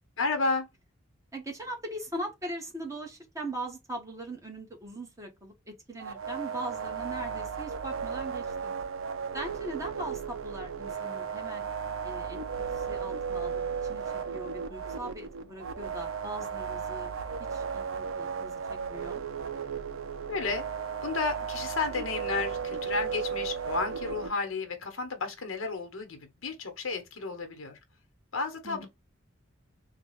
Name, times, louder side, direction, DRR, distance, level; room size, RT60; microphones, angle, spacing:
voice 1, 0.2-0.7 20.3-20.7 21.0-27.8 28.3-28.9, left 4 dB, 75° left, 1.0 m, -32 dB
voice 2, 1.3-8.7 9.3-11.6 12.0-12.4 12.7-14.0 14.3-17.1 17.5-18.6 18.9-19.2 28.6-28.9, right 1 dB, 15° right, 1.1 m, -40 dB
sound 1, 6.0-24.3, right 6 dB, 75° right, 0.5 m, -35 dB
3.9 x 2.3 x 3.2 m
head